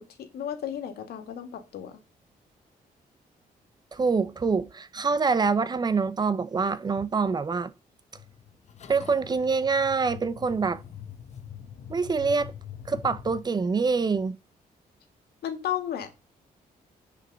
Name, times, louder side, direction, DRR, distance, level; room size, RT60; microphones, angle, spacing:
voice 1, 0.2-2.0 15.4-16.1, left 10 dB, 90° left, 2.1 m, -33 dB
voice 2, 3.9-7.7 8.9-10.8 11.9-12.5 12.9-14.4, right 4 dB, 25° right, 0.7 m, -25 dB
sound 1, 8.1-13.4, left 9 dB, 45° left, 0.9 m, -43 dB
9.4 x 5.2 x 6.8 m
cardioid pair, 140°, 16 cm